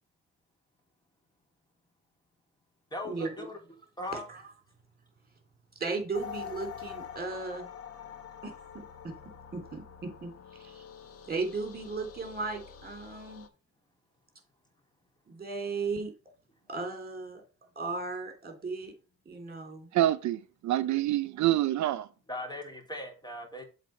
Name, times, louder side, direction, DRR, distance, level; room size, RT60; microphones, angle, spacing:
voice 1, 2.9-3.6 4.0-4.3 22.3-23.6, left 1 dB, 15° left, 2.8 m, -38 dB
voice 2, 4.1-4.4 5.8-7.7 8.4-9.1 9.5-10.8 11.3-13.5 15.3-16.1 16.7-17.4 17.7-18.9 19.2-20.0, right 3 dB, 30° right, 3.2 m, -36 dB
sound 1, 6.1-13.5, left 7 dB, 50° left, 1.4 m, -45 dB
voice 3, 19.9-22.1, right 13 dB, 70° right, 0.5 m, -27 dB
7.5 x 4.0 x 5.8 m
cardioid pair, 90°, 30 cm